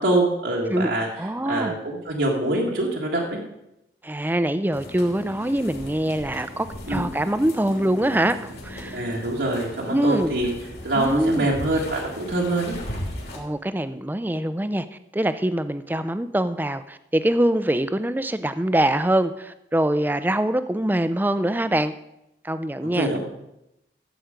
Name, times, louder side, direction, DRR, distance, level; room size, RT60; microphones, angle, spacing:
voice 1, 0.0-1.1 1.4-3.4 6.9-7.1 8.9-10.5 10.8-12.7 22.8-23.2, right 2 dB, 80° right, -3 dB, 1.8 m, -24 dB
voice 2, 1.2-1.7 4.0-9.0 9.9-10.3 11.0-11.5 13.3-21.9 22.4-23.2, right 1 dB, 10° right, 12 dB, 0.4 m, -24 dB
sound 1, 4.7-13.4, left 1 dB, 65° left, 3.0 m, -37 dB
14.0 x 7.8 x 5.1 m, 0.85 s
head